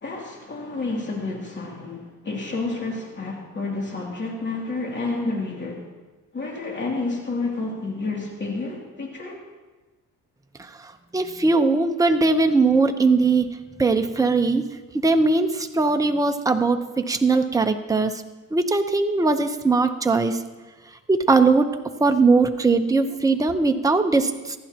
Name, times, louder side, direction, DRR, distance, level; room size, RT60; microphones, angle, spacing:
voice 1, 0.0-5.9 6.3-9.4, left 3 dB, 35° left, -2 dB, 2.9 m, -30 dB
voice 2, 10.6-14.6 14.9-18.2 18.5-20.4 21.1-21.7 22.0-24.6, right 3 dB, 10° right, 6 dB, 0.9 m, -20 dB
26.5 x 11.5 x 3.0 m, 1.2 s
cardioid pair, 90°, 30 cm